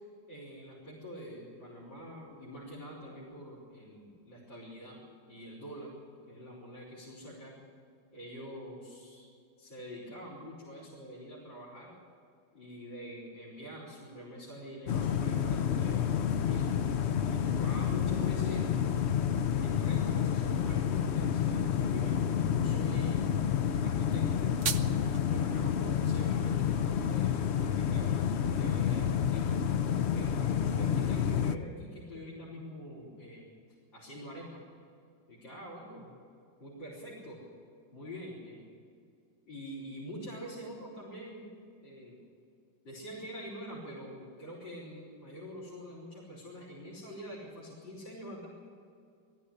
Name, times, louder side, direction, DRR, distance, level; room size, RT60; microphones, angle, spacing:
voice 1, 0.3-5.0 5.3-5.9 6.3-7.5 8.1-9.3 9.6-11.9 12.5-16.8 17.3-18.7 19.6-23.3 23.8-24.5 25.3-29.6 30.1-34.7 35.3-36.1 36.6-37.4 37.9-38.6 39.5-41.5 41.8-42.2 42.8-48.5, equal, 90° left, -6 dB, 5.3 m, -45 dB
sound 1, 14.9-31.6, left 8 dB, 65° left, 0.6 m, -29 dB
sound 2, 24.2-25.2, right 7 dB, 55° right, 0.9 m, -36 dB
21.0 x 13.5 x 9.9 m, 2.3 s
omnidirectional pair, 2.0 m